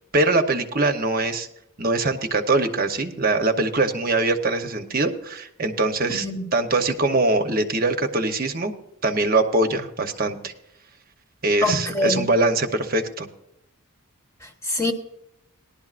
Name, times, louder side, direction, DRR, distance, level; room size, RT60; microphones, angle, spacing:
voice 1, 0.1-1.5 1.8-6.3 6.5-8.7 9.0-10.5 11.4-13.3, right 2 dB, 40° right, 0.9 m, -22 dB
voice 2, 6.1-6.4 11.6-12.3 14.4-14.9, left 2 dB, 15° left, 1.1 m, -25 dB
18.0 x 11.5 x 2.5 m
head